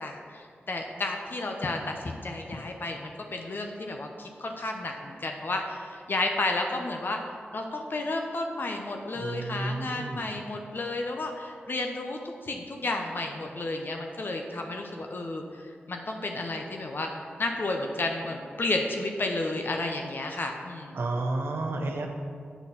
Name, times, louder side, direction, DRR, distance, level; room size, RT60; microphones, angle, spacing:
voice 1, 0.0-7.2 7.5-17.1 17.4-21.0, left 2 dB, 55° left, 3 dB, 0.7 m, -32 dB
voice 2, 9.1-10.2 20.9-22.1, right 2 dB, 70° right, 3 dB, 0.8 m, -31 dB
8.0 x 4.1 x 5.7 m, 2.1 s
cardioid pair, 40°, 4 cm